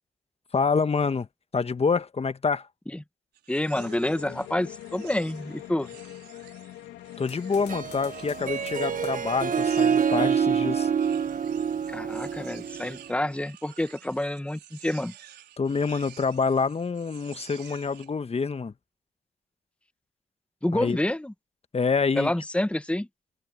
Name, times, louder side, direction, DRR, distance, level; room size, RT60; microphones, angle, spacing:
voice 1, 0.5-1.3 1.5-2.7 7.2-10.9 15.6-18.7 20.7-21.0 21.7-22.3, left 5 dB, 35° left, 1.5 m, -26 dB
sound 1, 3.3-10.3 10.8-18.1, right 11 dB, 70° right, 4.8 m, -51 dB
voice 2, 3.5-5.9 11.9-15.1 20.6-21.3 22.1-23.1, left 1 dB, 5° left, 1.7 m, -28 dB
sound 2, 3.7-10.0, left 14 dB, 80° left, 2.7 m, -43 dB
Harp, 7.6-13.1, right 7 dB, 50° right, 1.6 m, -26 dB
hypercardioid pair, 50°, 18 cm